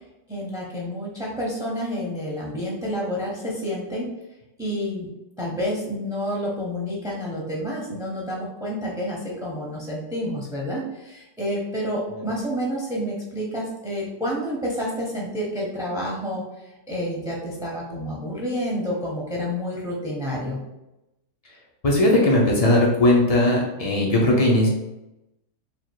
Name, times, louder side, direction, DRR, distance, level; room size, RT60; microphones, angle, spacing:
voice 1, 0.3-4.1 4.6-5.1 5.4-16.4 16.9-20.6, equal, 5° right, -4 dB, 0.5 m, -29 dB
voice 2, 21.8-24.7, left 1 dB, 60° left, -2 dB, 0.4 m, -18 dB
3.5 x 2.5 x 4.6 m, 0.93 s
omnidirectional pair, 1.8 m